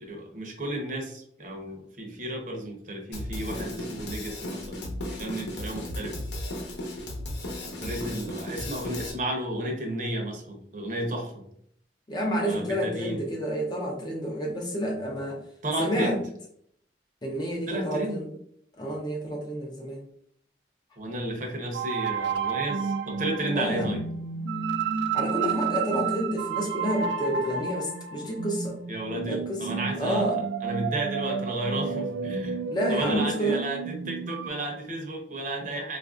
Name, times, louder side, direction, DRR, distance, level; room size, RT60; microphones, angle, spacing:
voice 1, 0.1-6.1 7.6-11.4 12.4-13.2 15.6-16.2 17.7-18.2 21.0-24.0 28.9-30.2 30.6-32.6 32.9-36.0, right 1 dB, 45° right, 1 dB, 0.7 m, -33 dB
Drum kit, 3.1-9.1, left 1 dB, 75° left, 0.8 m, -35 dB
voice 2, 12.1-15.4 15.8-16.2 17.2-18.3 18.8-20.1 23.5-24.0 25.1-28.8 29.2-29.7 30.0-30.4 32.7-33.6, equal, 25° left, 0 dB, 0.5 m, -29 dB
sound 1, 21.7-34.5, right 6 dB, 75° right, 0.3 m, -31 dB
4.0 x 2.5 x 2.4 m, 0.67 s
head